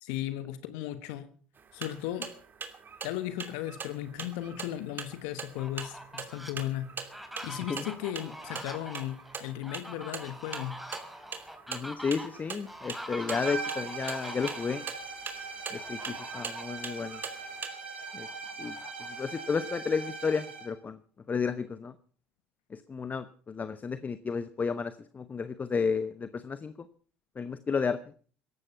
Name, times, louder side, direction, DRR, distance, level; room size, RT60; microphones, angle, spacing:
voice 1, 0.0-1.3 1.7-2.3 3.0-6.9 7.2-10.7, left 13 dB, 70° left, 12 dB, 1.3 m, -36 dB
sound 1, 1.6-17.7, right 6 dB, 35° right, 2.8 m, -43 dB
Fowl, 5.4-6.5 7.0-14.8 15.7-16.8 17.2-17.3 17.7-19.4, equal, ahead, 3.5 m, -44 dB
voice 2, 11.7-14.8 15.7-17.2 18.1-18.3 18.6-18.7 19.2-21.0 21.3-21.9 22.7-26.7 27.4-28.0, left 5 dB, 30° left, 13 dB, 0.9 m, -32 dB
sound 2, 13.3-20.8, right 4 dB, 85° right, 5.4 m, -40 dB
17.5 x 13.5 x 5.7 m, 0.43 s
hypercardioid pair, 65°, 6 cm